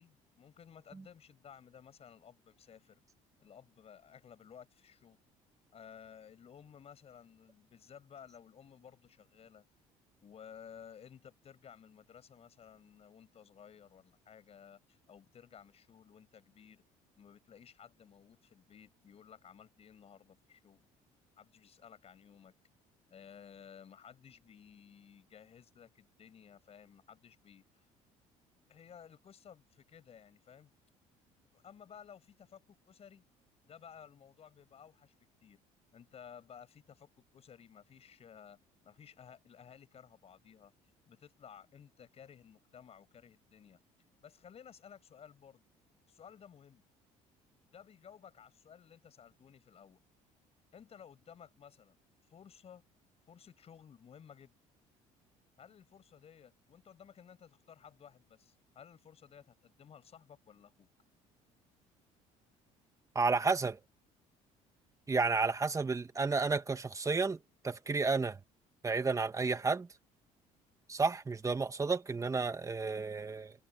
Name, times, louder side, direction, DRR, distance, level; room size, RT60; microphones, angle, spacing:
voice 1, 0.0-3.0 3.4-5.2 5.7-9.6 10.2-16.8 17.2-20.8 21.4-22.5 23.1-27.9 28.7-30.7 31.5-33.2 33.7-35.1 35.4-35.6 35.9-38.6 38.8-40.7 41.1-43.8 44.2-45.6 46.1-46.8 47.7-50.0 50.7-52.0 52.3-52.8 53.3-54.5 55.6-60.9, left 8 dB, 45° left, 6.8 m, -56 dB
voice 2, 63.2-63.8 65.1-67.4 67.6-68.4 68.8-69.9 70.9-73.5, right 4 dB, 20° right, 1.8 m, -31 dB
cardioid pair, 95°, 15 cm